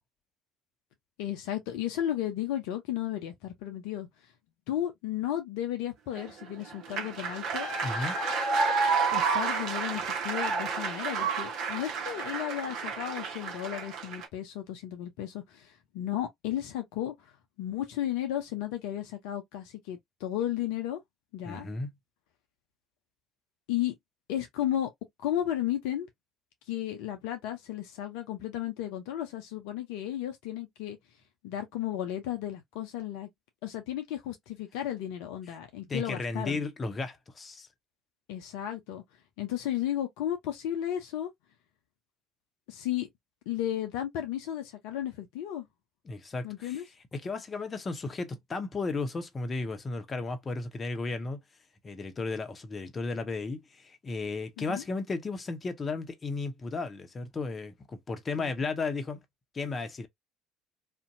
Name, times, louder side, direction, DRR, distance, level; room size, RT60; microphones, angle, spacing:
voice 1, 1.2-4.1 4.7-7.7 9.1-17.1 17.6-21.0 21.3-21.7 23.7-23.9 24.3-24.9 25.2-26.1 26.7-31.0 31.4-33.3 33.6-36.6 38.3-39.0 39.4-41.3 42.7-43.1 43.5-45.7 46.4-46.8 54.6-54.8 58.4-58.5, left 12 dB, 70° left, 0.5 m, -34 dB
sound 1, 6.2-14.3, right 4 dB, 60° right, 0.7 m, -30 dB
voice 2, 7.8-8.2 21.4-21.9 35.8-37.7 46.1-46.8 47.1-51.4 51.8-59.2 59.5-60.1, left 3 dB, 30° left, 0.7 m, -34 dB
2.6 x 2.2 x 2.5 m
figure-of-eight pair, 60°, 0 cm